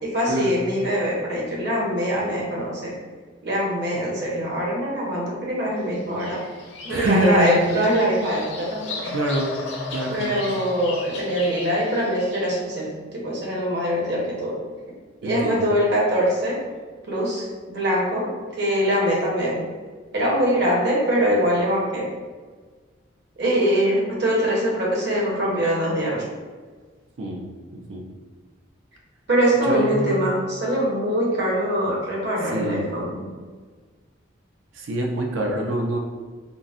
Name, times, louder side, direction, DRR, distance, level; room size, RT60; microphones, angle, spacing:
voice 1, 0.0-2.9 3.4-6.4 6.8-9.1 10.1-14.6 15.2-16.6 17.1-18.3 18.6-19.7 20.1-22.1 23.4-26.3 29.3-33.3, equal, 60° right, -4 dB, 0.9 m, -23 dB
Bird vocalization bird call bird song, 5.9-12.6, left 3 dB, 60° left, 0.5 m, -35 dB
voice 2, 6.9-7.6 9.1-9.5 9.9-10.4 15.2-15.7 27.2-27.4 27.9-28.0 29.7-30.3 32.5-32.8 34.8-36.0, right 1 dB, 80° right, 0 dB, 0.5 m, -24 dB
3.8 x 2.0 x 2.4 m, 1.4 s
head